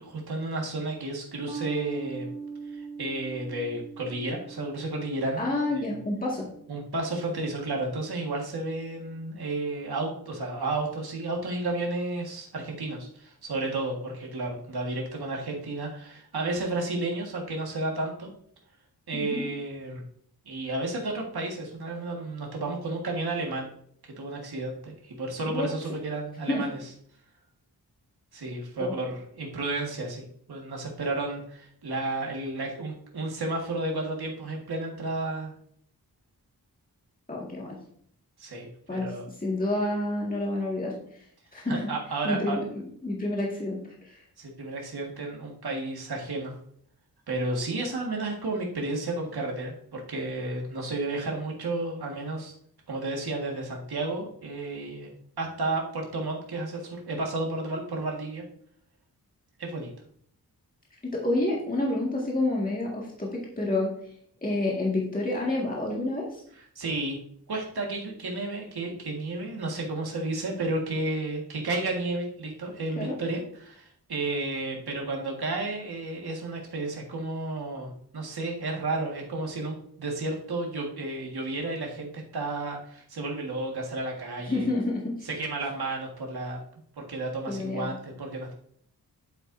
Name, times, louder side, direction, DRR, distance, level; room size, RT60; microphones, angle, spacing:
voice 1, 0.0-2.3 2.7-5.4 5.7-5.9 6.7-18.3 19.1-20.0 20.5-23.7 24.0-26.8 28.3-35.5 38.4-39.3 41.7-42.6 44.4-46.6 47.3-52.5 52.9-58.4 59.6-59.9 66.6-67.2 67.5-84.7 85.2-86.6 87.0-88.5, right 2 dB, 85° right, 0 dB, 1.8 m, -32 dB
sound 1, 1.5-8.2, right 5 dB, 15° right, 1.3 m, -42 dB
voice 2, 5.4-6.5 19.1-19.4 25.5-25.7 26.5-26.6 28.8-28.9 37.3-37.8 38.9-39.1 39.4-41.3 41.5-41.9 42.2-44.2 61.0-63.9 64.4-66.4 73.0-73.1 84.5-85.3 87.5-87.9, left 2 dB, 20° left, -3 dB, 1.9 m, -29 dB
9.9 x 7.5 x 2.7 m, 0.63 s
wide cardioid pair, 115°, 37 cm